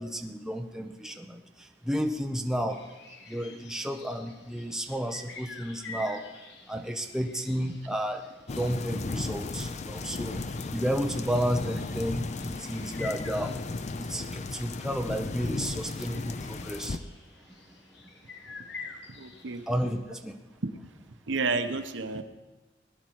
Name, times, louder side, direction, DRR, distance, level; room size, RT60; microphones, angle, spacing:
voice 1, 0.0-1.4 1.8-2.8 3.3-6.3 6.7-8.2 8.5-10.4 10.7-13.6 13.9-17.0 19.7-20.3, equal, 5° right, 4 dB, 0.7 m, -32 dB
sound 1, 2.7-20.0, left 4 dB, 65° left, 1.5 m, -49 dB
sound 2, 8.5-17.0, left 3 dB, 35° left, 0.5 m, -35 dB
voice 2, 19.1-19.6 21.3-22.2, right 3 dB, 75° right, 8 dB, 0.9 m, -30 dB
18.5 x 11.0 x 4.6 m, 1.1 s
head